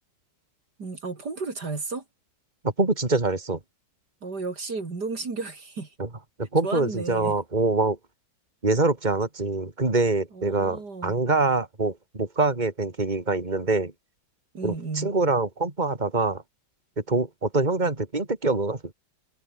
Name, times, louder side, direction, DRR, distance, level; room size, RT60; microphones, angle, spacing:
voice 1, 0.8-2.0 4.2-5.9 6.6-7.4 10.3-11.1 14.5-15.1, right 4 dB, 60° right, 3.8 m, -33 dB
voice 2, 2.8-3.6 6.0-6.1 6.4-8.0 8.6-13.9 14.6-16.4 17.1-18.9, right 3 dB, 25° right, 3.5 m, -25 dB
omnidirectional pair, 2.0 m